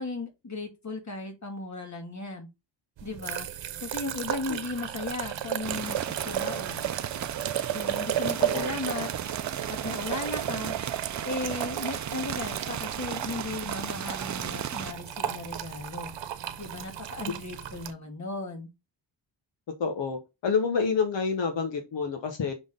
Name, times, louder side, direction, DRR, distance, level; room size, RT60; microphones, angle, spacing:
voice 1, 0.0-2.5 3.0-3.5 3.8-6.0 6.2-6.9 7.7-9.1 9.7-10.8 11.2-16.1 16.6-18.7, left 3 dB, 40° left, 2.5 m, -36 dB
sound 1, 3.0-17.9, right 11 dB, 80° right, 1.0 m, -34 dB
sound 2, 5.6-14.9, right 9 dB, 40° right, 0.6 m, -35 dB
voice 2, 8.4-8.7 19.8-22.5, left 5 dB, 75° left, 1.6 m, -28 dB
6.3 x 3.9 x 3.8 m
cardioid pair, 95°, 44 cm